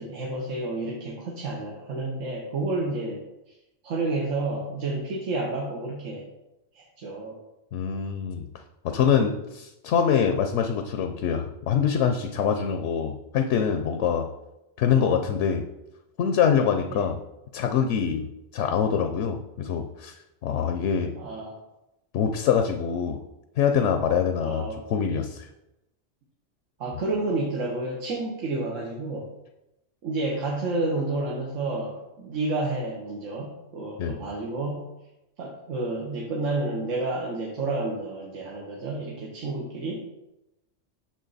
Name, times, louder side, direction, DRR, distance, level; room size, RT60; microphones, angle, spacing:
voice 1, 0.0-3.5 3.8-6.3 6.7-7.4 16.9-17.0 21.2-21.6 24.4-24.8 26.8-29.3 30.0-34.9 35.4-40.0, right 2 dB, 80° right, -1 dB, 1.4 m, -30 dB
voice 2, 7.7-8.5 8.8-14.3 14.8-15.6 16.2-17.2 17.5-18.3 18.5-20.2 20.4-21.2 22.1-23.2 23.6-25.5 34.0-34.2, left 7 dB, 75° left, 6 dB, 0.9 m, -24 dB
6.5 x 6.3 x 4.0 m, 0.93 s
omnidirectional pair, 1.3 m